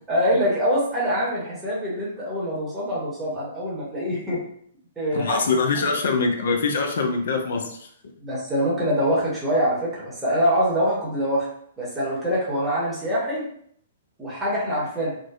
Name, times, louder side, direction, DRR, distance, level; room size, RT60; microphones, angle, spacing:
voice 1, 0.1-4.4 5.0-5.4 5.8-5.9 8.2-11.5 11.8-13.5 14.2-15.1, equal, 10° right, -7 dB, 0.8 m, -24 dB
voice 2, 5.1-7.9, left 4 dB, 60° left, 3 dB, 0.4 m, -23 dB
2.5 x 2.1 x 2.4 m, 0.65 s
figure-of-eight pair, 110°, 0 cm